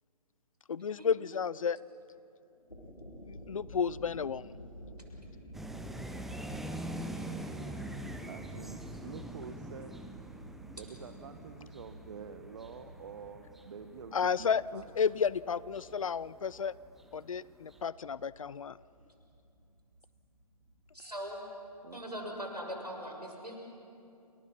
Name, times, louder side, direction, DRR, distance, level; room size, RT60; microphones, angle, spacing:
voice 1, 0.7-1.8 3.3-4.6 14.1-16.7 17.1-18.8, left 6 dB, 55° left, 21 dB, 0.6 m, -32 dB
sound 1, 2.5-22.2, equal, 90° left, 7.9 m, -52 dB
sound 2, 5.5-16.5 17.0-17.4 17.7-17.8, right 1 dB, ahead, 0.7 m, -44 dB
voice 2, 8.3-10.0 10.7-14.9 21.8-22.0, right 6 dB, 50° right, 9 dB, 1.1 m, -47 dB
voice 3, 20.9-21.4 21.9-23.6, equal, 90° right, 1 dB, 6.7 m, -40 dB
29.0 x 28.0 x 5.9 m, 2.7 s
figure-of-eight pair, 135°, 20 cm